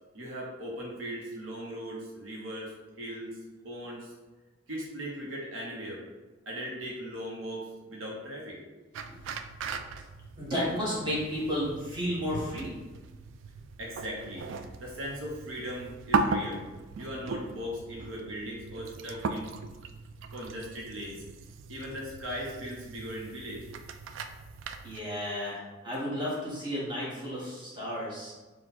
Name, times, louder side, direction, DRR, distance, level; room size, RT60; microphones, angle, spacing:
voice 1, 0.1-2.7 3.0-3.4 3.6-4.1 4.7-6.0 6.5-8.6 13.8-14.5 14.8-16.6 17.0-19.5 20.3-21.2 21.7-23.7, equal, 85° right, -3 dB, 1.0 m, -38 dB
sound 1, 8.9-25.0, right 4 dB, 65° right, 0.3 m, -37 dB
voice 2, 10.4-12.7 24.8-28.3, equal, 25° right, -8 dB, 1.5 m, -33 dB
4.4 x 2.4 x 4.1 m, 1.2 s
head